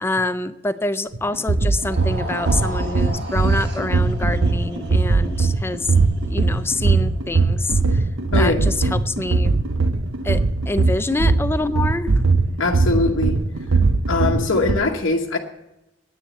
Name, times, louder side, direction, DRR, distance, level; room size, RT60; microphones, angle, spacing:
voice 1, 0.0-5.9 6.3-8.0 8.3-9.6 10.2-12.3, left 2 dB, 10° left, 12 dB, 0.5 m, -26 dB
sound 1, 1.1-14.7, right 3 dB, 75° right, 0.8 m, -20 dB
sound 2, 1.7-8.0, right 1 dB, 60° right, 1.7 m, -37 dB
voice 2, 8.3-8.6 12.6-13.4 14.1-15.4, left 3 dB, 80° left, 0 dB, 1.1 m, -21 dB
10.0 x 9.8 x 7.2 m, 0.91 s
head